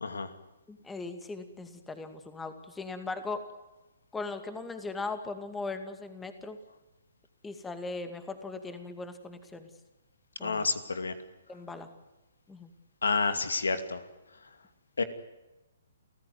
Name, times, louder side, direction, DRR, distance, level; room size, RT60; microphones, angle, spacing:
voice 1, 0.7-3.4 4.1-6.6 7.4-9.7 10.4-10.7 11.5-11.9 12.5-12.7, left 3 dB, 10° left, 8 dB, 2.3 m, -39 dB
voice 2, 10.4-11.1 13.0-14.0 15.0-15.1, left 4 dB, 85° left, 10 dB, 2.5 m, -29 dB
29.5 x 14.5 x 9.6 m, 1.1 s
hypercardioid pair, 135°, 0 cm